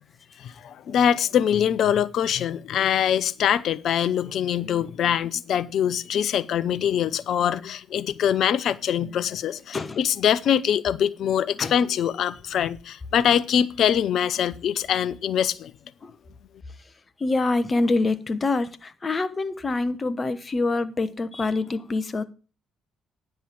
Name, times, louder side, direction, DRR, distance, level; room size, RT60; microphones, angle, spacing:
voice 1, 0.4-15.7, left 9 dB, 60° left, 0.7 m, -23 dB
voice 2, 17.2-22.2, left 3 dB, 35° left, 1.1 m, -25 dB
10.0 x 5.5 x 7.5 m
hypercardioid pair, 45°, 0 cm